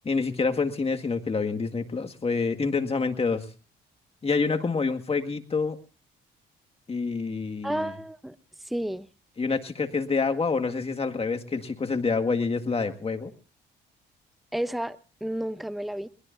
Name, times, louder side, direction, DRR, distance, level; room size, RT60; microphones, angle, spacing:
voice 1, 0.1-3.5 4.2-5.8 6.9-7.9 9.4-13.3, left 4 dB, 30° left, 6 dB, 1.9 m, -27 dB
voice 2, 7.6-8.4 8.7-9.1 14.5-16.1, right 1 dB, ahead, 13 dB, 0.8 m, -31 dB
22.0 x 21.0 x 2.6 m, 0.37 s
cardioid pair, 90°, 20 cm